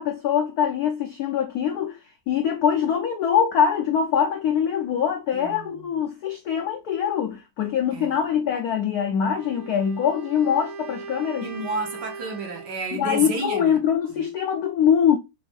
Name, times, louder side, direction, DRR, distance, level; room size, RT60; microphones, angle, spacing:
voice 1, 0.0-2.0 2.3-11.5 12.9-15.2, left 8 dB, 75° left, 0.8 m, -23 dB
voice 2, 5.3-5.7 7.9-8.2 11.4-13.8, right 3 dB, 60° right, 1.3 m, -31 dB
Wind instrument woodwind instrument, 9.3-12.8, right 4 dB, 90° right, 1.8 m, -39 dB
4.2 x 2.5 x 3.3 m
omnidirectional pair, 2.3 m